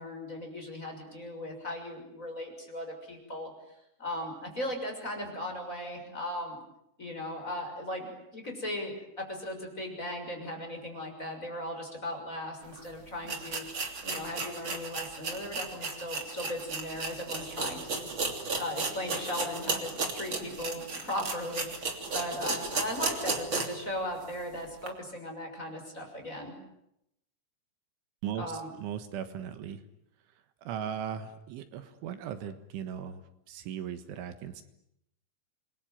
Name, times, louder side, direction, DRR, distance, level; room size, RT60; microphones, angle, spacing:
voice 1, 0.0-3.5 4.0-6.6 7.0-13.6 14.0-18.1 18.6-26.5 28.3-28.7, left 1 dB, 15° left, 2 dB, 6.4 m, -37 dB
sound 1, 12.7-12.8 13.2-23.9 24.2-24.3 24.8-24.9, right 3 dB, 30° right, 3.1 m, -34 dB
voice 2, 28.8-29.8 30.6-34.6, right 9 dB, 80° right, 10 dB, 3.8 m, -38 dB
28.0 x 22.5 x 9.3 m, 0.79 s
omnidirectional pair, 5.6 m